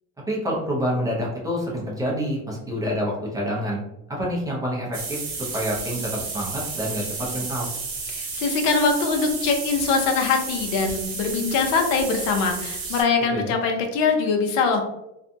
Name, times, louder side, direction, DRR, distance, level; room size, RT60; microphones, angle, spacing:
voice 1, 0.3-3.8 4.1-5.2 5.5-7.7 13.3-13.5, equal, 10° right, -4 dB, 0.5 m, -27 dB
sound 1, 4.9-13.0, right 4 dB, 50° right, 1.0 m, -32 dB
voice 2, 8.1-14.8, left 4 dB, 70° left, 4 dB, 0.7 m, -22 dB
2.6 x 2.2 x 2.6 m, 0.90 s
cardioid pair, 145°, 37 cm